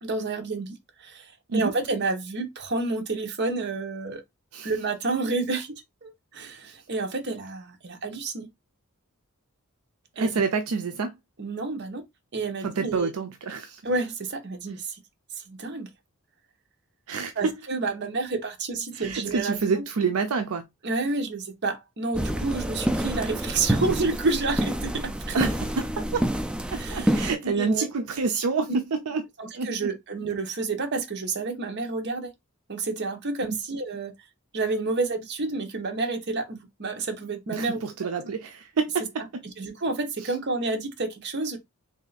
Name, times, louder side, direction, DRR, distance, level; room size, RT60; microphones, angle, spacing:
voice 1, 0.0-4.2 4.6-5.7 6.0-8.5 10.2-10.3 11.4-12.0 12.3-13.1 13.8-15.0 15.5-15.9 17.4-19.6 20.8-25.4 26.7-27.9 29.4-32.3 32.7-34.1 34.5-37.8 39.6-41.6, right 3 dB, 50° right, 0.9 m, -29 dB
voice 2, 10.2-11.1 12.6-13.8 17.1-17.3 18.9-20.7 25.3-26.3 26.7-29.2 29.5-29.9 37.5-39.0 40.2-40.3, right 4 dB, 75° right, 0.5 m, -28 dB
sound 1, 22.1-27.3, right 1 dB, 5° right, 0.3 m, -28 dB
3.3 x 2.6 x 4.0 m
head